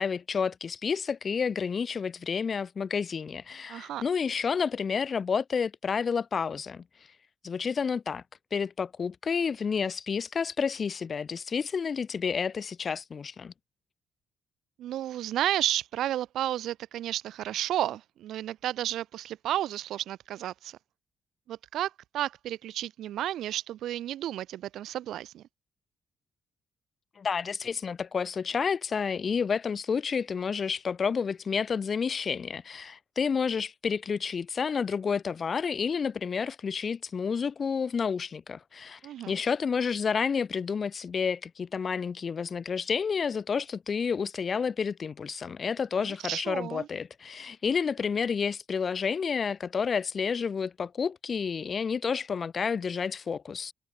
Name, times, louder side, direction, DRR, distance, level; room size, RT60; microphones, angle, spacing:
voice 1, 0.0-6.8 7.4-8.2 8.5-13.5 27.2-39.0 39.3-53.7, left 6 dB, 45° left, 6.2 m, -30 dB
voice 2, 3.7-4.0 14.8-20.8 21.5-25.4 39.0-39.4 46.0-46.9, right 12 dB, 80° right, 2.5 m, -32 dB
cardioid pair, 90°, 0 cm